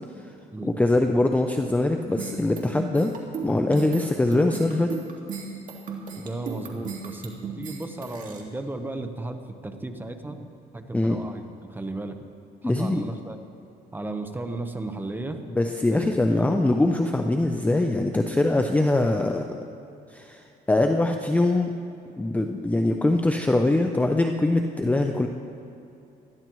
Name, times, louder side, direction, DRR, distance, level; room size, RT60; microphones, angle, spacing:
voice 1, 0.6-3.1 3.4-4.9 10.9-11.2 12.6-13.1 15.5-19.6 20.1-21.7 22.2-25.3, left 2 dB, 10° left, 4 dB, 0.6 m, -23 dB
sound 1, 2.2-8.4, right 5 dB, 55° right, 2.1 m, -36 dB
voice 2, 6.1-10.5 10.7-11.4 11.7-12.2 12.6-13.4 13.9-15.4 15.9-16.6, right 2 dB, 10° right, 6 dB, 1.0 m, -34 dB
20.5 x 13.5 x 3.1 m, 2.8 s
cardioid pair, 110°, 17 cm